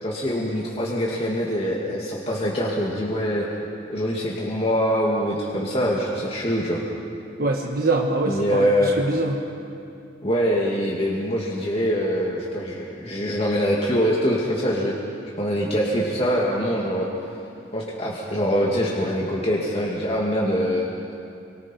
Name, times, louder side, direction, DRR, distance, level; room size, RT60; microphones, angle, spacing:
voice 1, 0.0-3.5 3.9-6.8 8.3-9.0 10.2-14.9 15.4-17.1 17.7-20.8, equal, 35° left, -4 dB, 2.3 m, -24 dB
voice 2, 7.4-9.4, right 2 dB, 55° right, 1 dB, 1.3 m, -24 dB
27.5 x 24.0 x 4.6 m, 2.6 s
head